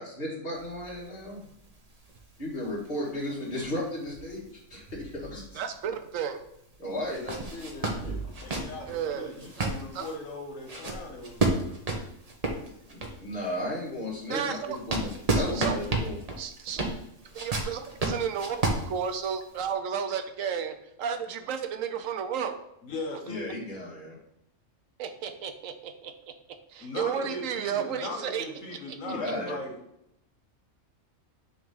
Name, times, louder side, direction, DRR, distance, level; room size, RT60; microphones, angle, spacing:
voice 1, 0.0-1.4 2.4-5.6 6.8-8.2 12.9-16.2 23.2-24.2 29.0-29.6, left 1 dB, 50° left, -5 dB, 2.1 m, -35 dB
sound 1, 0.5-5.9 6.2-6.3 7.0-13.4 13.9-19.6, right 2 dB, 35° right, 0.9 m, -32 dB
voice 2, 5.5-6.4 8.9-9.7 9.9-10.1 14.3-14.8 15.3-15.7 16.4-16.8 17.3-22.5 25.0-26.1 26.7-28.4 28.9-29.0, right 7 dB, 85° right, 7 dB, 1.1 m, -33 dB
voice 3, 8.0-11.7 22.8-23.4 26.8-29.8, left 2 dB, 85° left, 2 dB, 1.6 m, -39 dB
6.2 x 3.0 x 5.3 m, 0.80 s
omnidirectional pair, 1.3 m